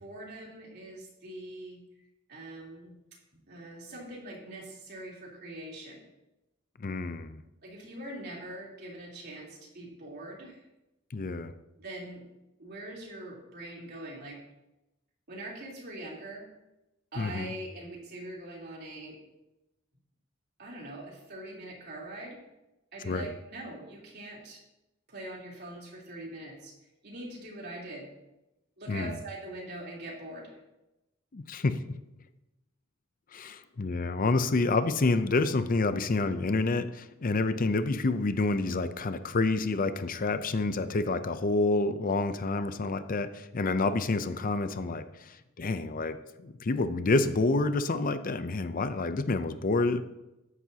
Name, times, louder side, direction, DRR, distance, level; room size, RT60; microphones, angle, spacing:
voice 1, 0.0-1.8 2.3-2.9 3.5-6.0 7.6-10.7 11.8-12.2 12.6-14.4 15.3-16.5 17.1-19.2 20.6-22.4 22.9-24.6 25.1-26.7 27.0-28.1 28.8-30.6, right 1 dB, 55° right, -3 dB, 3.6 m, -43 dB
voice 2, 6.8-7.4 11.1-11.5 17.2-17.5 23.1-23.3 28.9-29.1 31.3-31.8 33.3-50.0, left 3 dB, 45° left, 11 dB, 0.6 m, -28 dB
13.5 x 11.0 x 2.9 m, 0.95 s
head